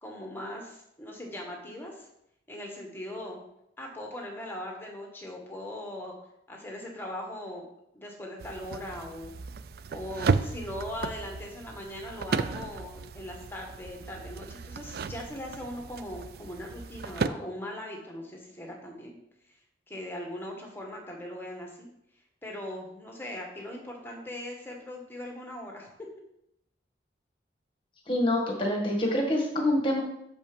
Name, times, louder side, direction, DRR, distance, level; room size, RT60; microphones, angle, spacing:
voice 1, 0.0-2.1 2.5-3.4 3.8-6.1 6.5-7.7 7.9-9.3 9.9-19.1 19.9-21.9 22.4-25.9, left 1 dB, 10° left, 1 dB, 1.5 m, -40 dB
sound 1, 8.4-17.3, right 5 dB, 55° right, 0.4 m, -34 dB
voice 2, 28.1-30.0, left 1 dB, 30° left, 0 dB, 1.7 m, -26 dB
6.7 x 5.4 x 5.2 m, 0.78 s
head